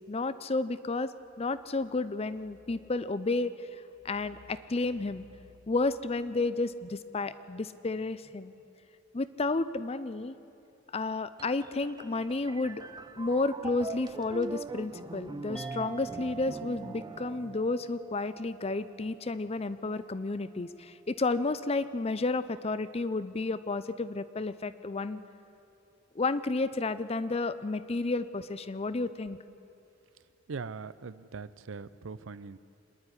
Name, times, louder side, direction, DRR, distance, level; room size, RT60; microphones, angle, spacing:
voice 1, 0.1-3.7 4.0-5.2 5.7-8.5 9.1-10.3 10.9-12.8 13.2-25.2 26.2-29.4, left 3 dB, 30° left, 14 dB, 0.5 m, -31 dB
sound 1, 11.4-18.1, right 2 dB, 20° right, 0.5 m, -43 dB
sound 2, 15.6-20.5, right 9 dB, 5° left, 1.0 m, -47 dB
voice 2, 30.5-32.6, right 4 dB, 80° right, 16 dB, 0.6 m, -41 dB
26.0 x 10.5 x 9.7 m, 2.7 s
head